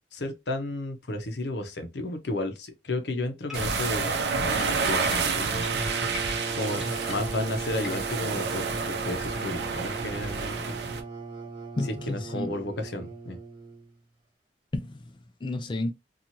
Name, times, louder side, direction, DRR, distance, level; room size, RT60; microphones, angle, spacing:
voice 1, 0.1-10.6 12.1-13.4, left 2 dB, 70° left, 0.7 m, -33 dB
sound 1, 3.5-8.3, left 4 dB, 5° right, 0.9 m, -42 dB
sound 2, 3.5-11.0, right 4 dB, 70° right, 0.6 m, -29 dB
sound 3, 5.5-13.9, right 4 dB, 30° right, 0.8 m, -37 dB
voice 2, 11.8-12.6 14.7-15.9, left 2 dB, 25° left, 0.3 m, -32 dB
2.9 x 2.4 x 2.7 m
head